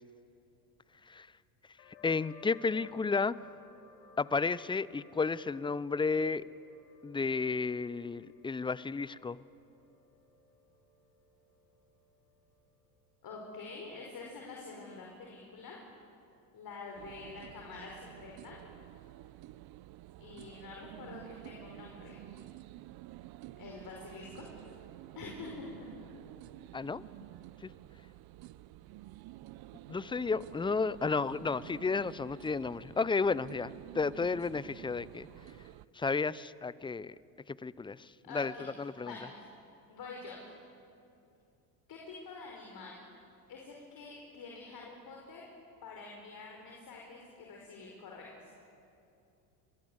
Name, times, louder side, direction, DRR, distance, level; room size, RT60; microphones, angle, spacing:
sound 1, 1.8-13.1, left 2 dB, 80° left, 3.9 m, -61 dB
voice 1, 2.0-3.4 4.2-6.4 7.0-9.4 26.7-27.0 29.9-35.3 36.0-37.1 37.5-38.0 38.3-38.5 38.8-39.1, left 4 dB, 10° left, 19 dB, 0.5 m, -32 dB
voice 2, 13.2-15.8 16.5-18.6 20.2-22.2 23.6-24.5 25.2-25.9 38.2-39.4 39.9-40.4 41.9-43.1 43.5-45.4 45.8-48.5, left 4 dB, 45° left, -1 dB, 5.2 m, -47 dB
sound 2, 17.0-35.9, right 16 dB, 50° right, 0.7 m, -50 dB
27.0 x 22.0 x 8.1 m, 2.6 s
hypercardioid pair, 80°, 48 cm